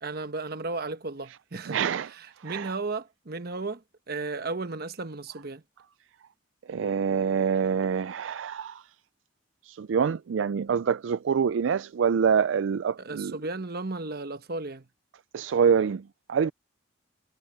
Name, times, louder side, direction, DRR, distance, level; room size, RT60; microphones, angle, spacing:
voice 1, 0.0-1.8 2.1-5.6 13.0-14.9, right 3 dB, 50° right, 1.1 m, -34 dB
voice 2, 1.7-2.1 2.4-2.7 6.7-8.8 9.7-13.4 15.3-16.0 16.3-16.5, right 7 dB, 75° right, 0.4 m, -25 dB
head